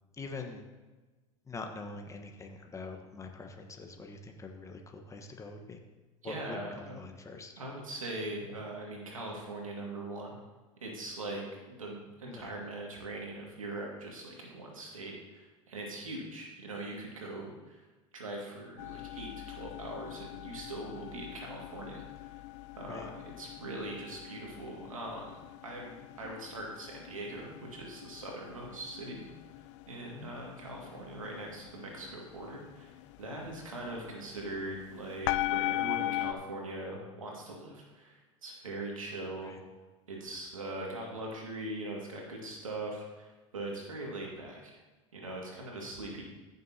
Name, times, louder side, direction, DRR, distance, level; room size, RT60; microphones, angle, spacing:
voice 1, 0.1-0.7 1.5-5.8 6.2-7.5 12.3-12.5 22.9-23.1 30.0-30.3 39.4-39.6, left 3 dB, 20° left, 3 dB, 1.3 m, -44 dB
voice 2, 6.2-7.0 7.6-10.4 10.8-11.4 11.7-17.8 18.1-22.3 22.8-25.3 25.6-29.3 29.9-39.5 40.1-44.8 45.1-46.2, right 2 dB, 90° right, -1 dB, 2.1 m, -41 dB
sound 1, 18.8-36.3, left 16 dB, 65° left, 0.4 m, -40 dB
14.5 x 6.7 x 2.9 m, 1.2 s
hypercardioid pair, 80°, 17 cm